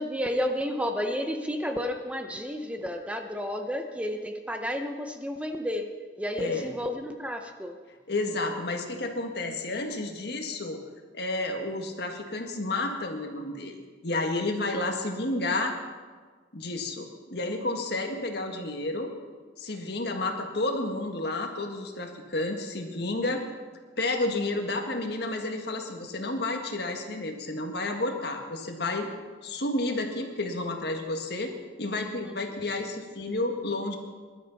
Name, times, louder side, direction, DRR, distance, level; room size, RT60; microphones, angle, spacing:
voice 1, 0.0-5.9 6.2-7.8 32.2-32.4, equal, 5° right, 5 dB, 0.7 m, -31 dB
voice 2, 8.1-10.8 11.1-13.8 14.0-15.7 16.5-19.1 19.6-23.4 24.0-29.1 29.4-31.5 31.8-34.0, left 2 dB, 60° left, 3 dB, 1.7 m, -31 dB
22.0 x 12.0 x 4.1 m, 1.5 s
head